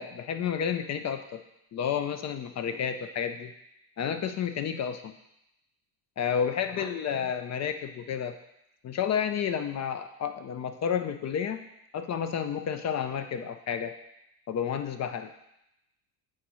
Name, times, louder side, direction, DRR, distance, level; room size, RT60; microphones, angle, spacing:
voice 1, 0.0-1.4 1.7-3.5 4.0-5.1 6.2-8.3 8.8-11.6 11.9-13.9 14.5-15.3, left 8 dB, 40° left, 8 dB, 0.5 m, -31 dB
9.0 x 3.6 x 3.0 m, 0.84 s
cardioid pair, 95°, 42 cm